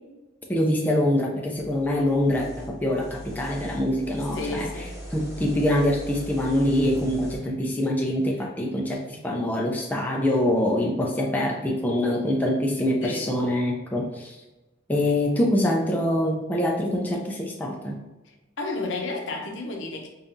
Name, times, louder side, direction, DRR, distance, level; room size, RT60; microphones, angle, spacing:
voice 1, 0.5-4.7 5.1-14.4 14.9-18.0, left 1 dB, 10° left, -1 dB, 0.4 m, -24 dB
sound 1, 1.6-7.4, right 1 dB, 15° right, 1.1 m, -40 dB
voice 2, 4.3-5.0 13.0-13.3 18.2-20.1, left 3 dB, 75° left, 2 dB, 0.7 m, -32 dB
5.3 x 2.4 x 2.6 m, 1.1 s
head